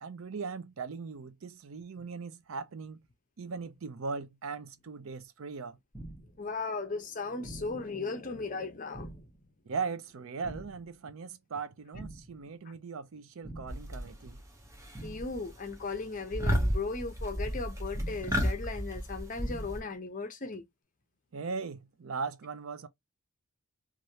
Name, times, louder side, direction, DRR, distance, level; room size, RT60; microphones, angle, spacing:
voice 1, 0.0-3.0 3.4-5.8 9.7-14.4 21.3-22.9, right 4 dB, 70° right, 0.5 m, -39 dB
sound 1, 5.9-6.4 7.4-7.9 8.9-9.4 10.4-10.9 11.9-12.4 13.4-13.9 14.9-15.4 16.4-16.9 17.9-18.4 19.4-19.9, right 1 dB, ahead, 1.0 m, -45 dB
voice 2, 6.4-9.1 15.0-20.6, left 3 dB, 35° left, 0.6 m, -37 dB
sound 2, 13.7-14.3 14.7-15.4 15.6-15.9 16.3-19.8, equal, 15° right, 0.6 m, -32 dB
3.1 x 2.5 x 2.7 m
head